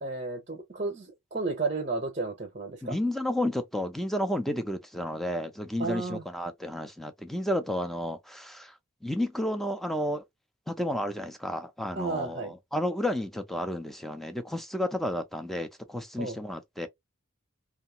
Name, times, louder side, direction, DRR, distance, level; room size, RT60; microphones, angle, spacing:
voice 1, 0.0-3.0 5.8-6.2 11.9-12.5 16.2-16.4, right 3 dB, 30° right, 0.8 m, -32 dB
voice 2, 2.8-8.7 9.0-10.2 10.7-16.9, left 1 dB, ahead, 0.5 m, -31 dB
2.7 x 2.4 x 2.7 m
head